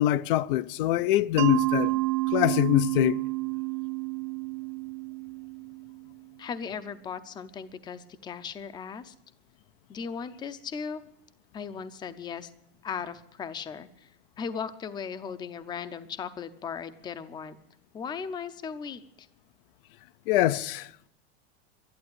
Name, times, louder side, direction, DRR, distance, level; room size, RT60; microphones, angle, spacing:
voice 1, 0.0-1.9 2.3-3.2 20.3-20.9, left 15 dB, 65° left, 0.6 m, -24 dB
Mallet percussion, 1.4-6.1, right 25 dB, 50° right, 0.5 m, -30 dB
voice 2, 6.4-9.1 9.9-11.0 11.5-12.5 12.8-14.1 14.4-17.6 17.9-19.3, left 6 dB, 15° left, 0.6 m, -37 dB
12.0 x 11.5 x 9.5 m
supercardioid pair, 155°, 29 cm